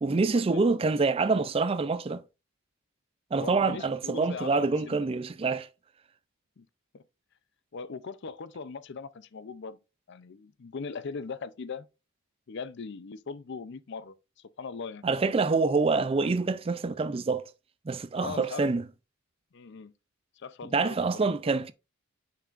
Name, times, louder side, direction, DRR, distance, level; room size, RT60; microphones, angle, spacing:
voice 1, 0.0-2.2 3.3-5.7 15.0-17.5 17.9-18.8 20.7-21.7, right 4 dB, 25° right, 0.3 m, -26 dB
voice 2, 3.4-5.1 6.6-6.7 6.9-7.0 7.7-9.8 10.1-11.9 12.5-15.0 18.2-18.7 19.5-19.9 20.4-21.2 21.4-21.6, left 5 dB, 55° left, 0.5 m, -40 dB
6.8 x 5.9 x 2.5 m
head